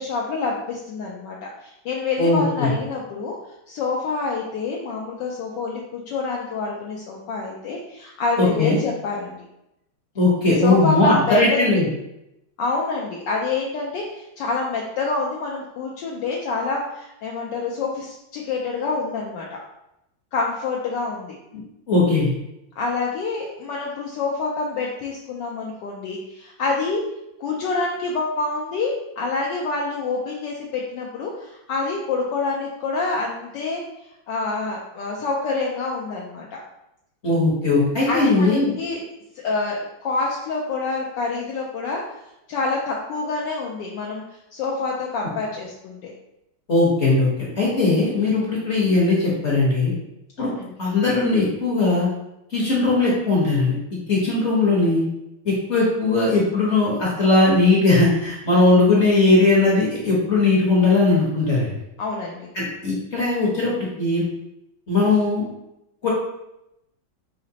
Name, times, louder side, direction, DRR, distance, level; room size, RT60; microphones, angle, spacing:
voice 1, 0.0-3.3 3.7-9.4 10.4-11.6 12.6-19.6 20.3-21.3 22.8-27.0 27.4-33.8 34.3-36.6 38.1-39.0 39.4-42.0 42.5-44.2 44.5-46.1 50.4-50.7 62.0-62.5, left 3 dB, 75° left, -2 dB, 1.1 m, -27 dB
voice 2, 2.2-2.7 8.4-8.8 10.1-11.8 21.9-22.3 37.2-38.7 46.7-49.9 50.4-50.5 50.8-52.1 52.5-53.7 54.1-55.0 55.4-61.7 62.5-64.2 64.9-65.4 66.0-66.1, left 2 dB, 45° left, -5 dB, 1.0 m, -19 dB
5.0 x 2.9 x 2.8 m, 0.86 s
omnidirectional pair, 2.2 m